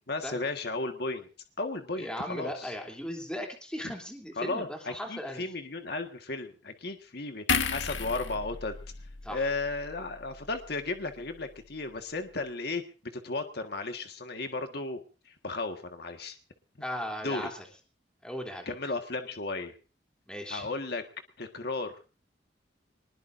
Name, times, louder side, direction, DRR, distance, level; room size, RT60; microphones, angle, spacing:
voice 1, 0.1-1.3 1.6-2.7 4.4-8.7 9.3-12.8 13.2-16.4 17.2-17.5 18.6-19.7 20.5-21.0 21.4-21.9, left 3 dB, 60° left, 6 dB, 1.7 m, -34 dB
voice 2, 2.0-5.4 9.2-9.5 16.8-17.6 18.2-18.7 20.3-20.7, equal, 5° left, 1 dB, 3.1 m, -37 dB
sound 1, 7.5-10.9 11.2-11.4, left 5 dB, 80° left, 1.6 m, -34 dB
24.0 x 20.5 x 2.7 m, 0.35 s
head